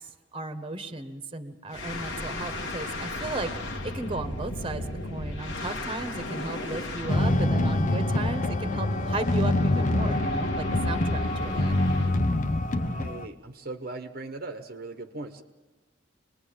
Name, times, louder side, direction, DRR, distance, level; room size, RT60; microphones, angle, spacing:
voice 1, 0.3-11.8, right 2 dB, 30° right, 9 dB, 1.4 m, -35 dB
sound 1, 1.7-12.2, left 1 dB, 80° left, 2.3 m, -36 dB
sound 2, 7.1-13.3, left 1 dB, 45° left, 0.9 m, -25 dB
voice 2, 12.7-15.4, right 2 dB, 50° right, 7 dB, 1.1 m, -39 dB
26.0 x 20.5 x 8.7 m, 1.2 s
head